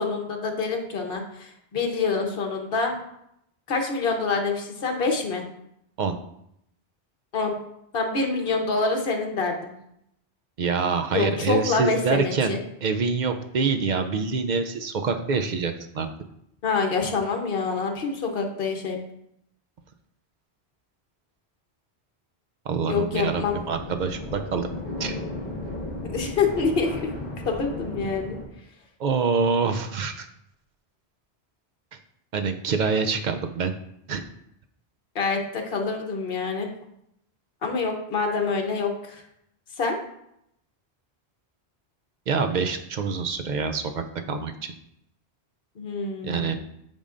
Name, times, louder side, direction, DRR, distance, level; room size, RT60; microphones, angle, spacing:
voice 1, 0.0-2.9 3.7-5.4 7.3-7.5 7.9-9.7 11.1-12.6 16.6-19.0 22.9-23.6 26.1-27.1 27.5-28.4 35.1-36.7 37.6-39.2 39.8-40.0 45.8-46.5, left 4 dB, 60° left, 3 dB, 1.2 m, -26 dB
voice 2, 10.6-16.1 22.7-24.7 25.0-25.1 29.0-30.3 31.9-32.0 32.3-33.7 34.1-34.2 42.3-44.7 46.2-46.5, right 5 dB, 55° right, 7 dB, 0.6 m, -26 dB
sound 1, 23.1-28.4, left 1 dB, 25° left, 1.5 m, -35 dB
8.5 x 5.5 x 2.5 m, 0.76 s
omnidirectional pair, 1.1 m